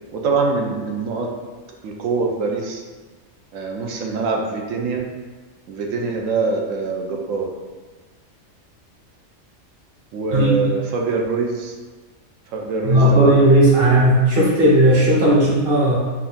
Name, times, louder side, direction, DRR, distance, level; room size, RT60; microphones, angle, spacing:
voice 1, 0.1-1.3 1.8-2.8 3.5-5.1 5.7-7.5 10.1-11.7 12.5-13.5 15.2-15.5, right 4 dB, 70° right, 1 dB, 0.9 m, -24 dB
voice 2, 10.3-10.7 12.8-16.0, right 1 dB, 45° right, -6 dB, 1.3 m, -15 dB
4.6 x 2.6 x 3.5 m, 1.4 s
omnidirectional pair, 1.5 m